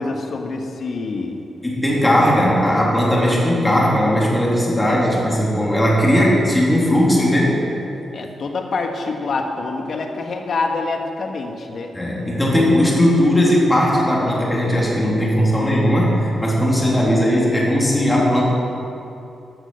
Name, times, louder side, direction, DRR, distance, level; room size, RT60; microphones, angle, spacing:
voice 1, 0.0-1.4 2.0-2.2 8.1-11.9, left 3 dB, 55° left, 3 dB, 1.3 m, -26 dB
voice 2, 1.6-7.6 11.9-18.4, equal, 15° left, -4 dB, 2.9 m, -17 dB
13.0 x 6.4 x 6.7 m, 2.8 s
cardioid pair, 95°, 0 cm